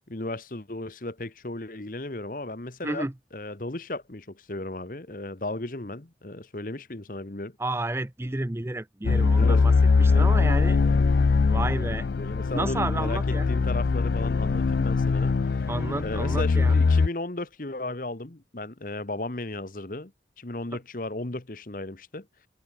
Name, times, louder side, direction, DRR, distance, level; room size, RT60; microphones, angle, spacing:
voice 1, 0.1-3.1 3.3-7.6 9.4-9.6 10.1-10.3 10.8-11.3 12.2-13.2 13.5-15.7 16.0-20.1 20.4-22.3, left 2 dB, 50° left, 1.3 m, -35 dB
voice 2, 7.6-9.7 10.0-10.8 11.5-12.1 12.5-13.5 15.7-16.8, right 2 dB, 15° right, 0.5 m, -31 dB
sound 1, 9.0-17.1, left 4 dB, 70° left, 0.4 m, -22 dB
head